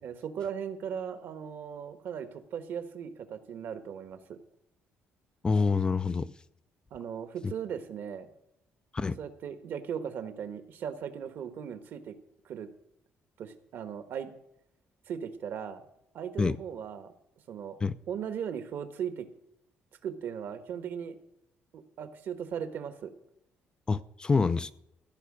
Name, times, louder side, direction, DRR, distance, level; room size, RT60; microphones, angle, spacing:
voice 1, 0.0-4.4 6.9-8.3 9.2-12.1 12.4-12.7 13.4-14.3 15.1-15.8 16.1-17.1 17.5-17.8 18.1-19.3 20.0-21.2 21.7-23.1, right 8 dB, 60° right, 1.4 m, -38 dB
voice 2, 5.4-6.3 8.9-9.2 16.4-16.6 17.8-17.9 23.9-24.7, left 4 dB, 20° left, 0.4 m, -26 dB
15.5 x 5.8 x 8.6 m
cardioid pair, 140°, 4 cm